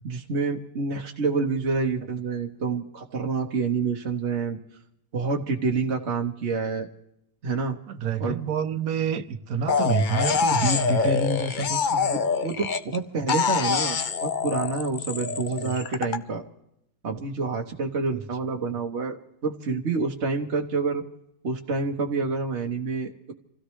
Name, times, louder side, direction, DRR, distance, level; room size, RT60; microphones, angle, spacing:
voice 1, 0.0-4.6 5.1-6.9 7.4-7.8 8.2-8.4 11.9-16.4 17.0-19.2 19.4-21.0 21.4-23.3, right 4 dB, 45° right, 1.4 m, -28 dB
voice 2, 7.9-11.9 15.6-15.8 18.1-18.2, right 4 dB, 65° right, 1.4 m, -27 dB
sound 1, 9.7-13.0 13.3-16.2, left 6 dB, 45° left, 0.6 m, -25 dB
27.5 x 16.5 x 3.2 m
omnidirectional pair, 1.7 m